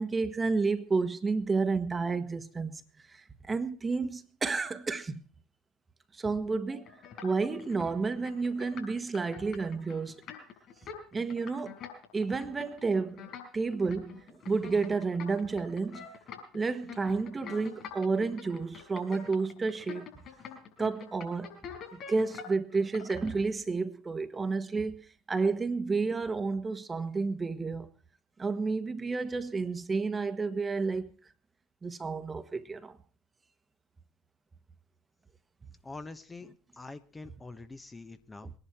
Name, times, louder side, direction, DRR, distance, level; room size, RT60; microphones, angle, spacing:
voice 1, 0.0-2.8 3.1-5.2 6.1-6.9 7.2-10.2 11.1-11.7 12.1-16.1 16.5-20.1 20.8-21.6 21.9-27.9 28.4-31.1 31.8-33.0 38.4-38.5, right 4 dB, 25° right, 1.4 m, -31 dB
sound 1, 6.7-23.3, left 7 dB, 50° left, 6.3 m, -46 dB
voice 2, 35.8-36.5 36.7-38.5, left 3 dB, 20° left, 1.2 m, -45 dB
22.5 x 11.0 x 4.5 m
hypercardioid pair, 70°, 0 cm